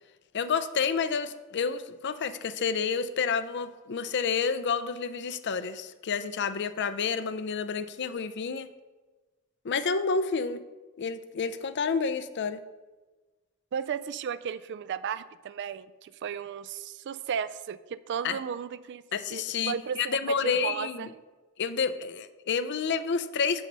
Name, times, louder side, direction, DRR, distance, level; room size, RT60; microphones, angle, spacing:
voice 1, 0.3-8.7 9.6-10.6 11.0-12.6 18.2-18.4 19.1-21.1 21.6-23.7, left 5 dB, 55° left, 12 dB, 0.5 m, -29 dB
voice 2, 13.7-19.0 19.3-21.1, right 7 dB, 55° right, 15 dB, 0.3 m, -35 dB
7.9 x 6.2 x 5.4 m, 1.3 s
head